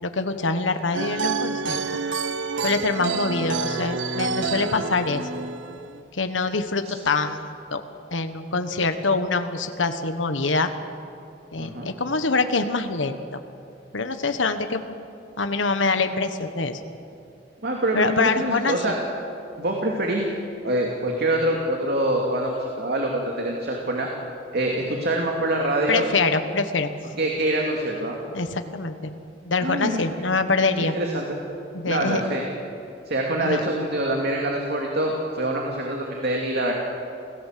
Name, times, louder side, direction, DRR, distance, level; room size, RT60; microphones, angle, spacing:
voice 1, 0.0-1.8 2.6-5.3 6.1-7.8 8.1-10.7 11.5-13.4 13.9-14.8 15.4-16.8 17.9-18.8 25.9-26.9 28.3-29.1 29.4-31.0 31.7-32.2 33.4-33.6, left 3 dB, 85° left, 8 dB, 1.4 m, -25 dB
sound 1, 0.9-6.0, right 4 dB, 85° right, 1.1 m, -28 dB
voice 2, 11.6-11.9 17.6-18.9 19.6-20.3 20.6-24.1 24.5-26.1 27.2-28.2 29.6-30.0 30.8-31.2 31.9-32.4 33.1-36.7, right 1 dB, 60° right, 0 dB, 2.6 m, -25 dB
28.5 x 17.0 x 7.6 m, 2.5 s
head